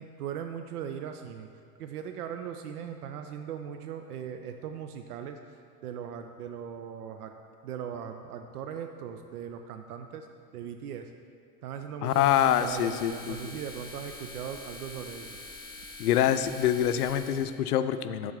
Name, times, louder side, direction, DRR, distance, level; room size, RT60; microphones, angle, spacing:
voice 1, 0.0-1.5 1.8-5.4 5.8-7.3 7.6-10.3 10.5-11.1 11.6-15.4, right 8 dB, 75° right, 6 dB, 0.6 m, -39 dB
voice 2, 12.0-13.6 16.0-18.3, left 10 dB, 75° left, 11 dB, 0.6 m, -25 dB
sound 1, 12.0-17.5, left 2 dB, 10° left, 1.5 m, -45 dB
7.2 x 4.1 x 6.3 m, 2.2 s
hypercardioid pair, 95°, 46 cm